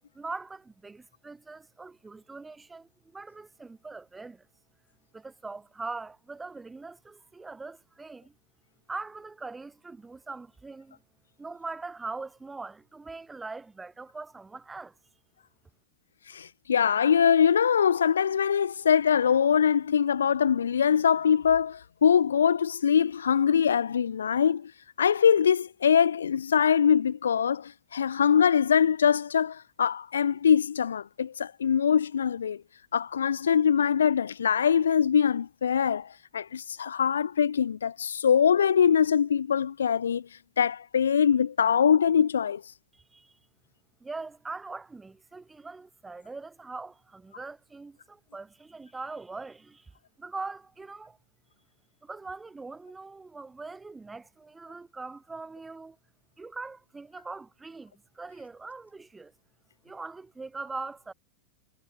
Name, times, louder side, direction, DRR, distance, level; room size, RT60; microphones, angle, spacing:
voice 1, 0.1-4.5 5.1-8.3 8.9-11.0 11.4-15.0 42.9-43.4 44.0-49.9 50.2-51.2 52.0-56.0 56.4-59.3 59.8-61.1, right 3 dB, 10° right, 4.4 m, -41 dB
voice 2, 16.3-24.7 25.0-32.6 32.9-40.2 40.6-42.6, left 7 dB, 70° left, 0.3 m, -23 dB
figure-of-eight pair, 90°, 0 cm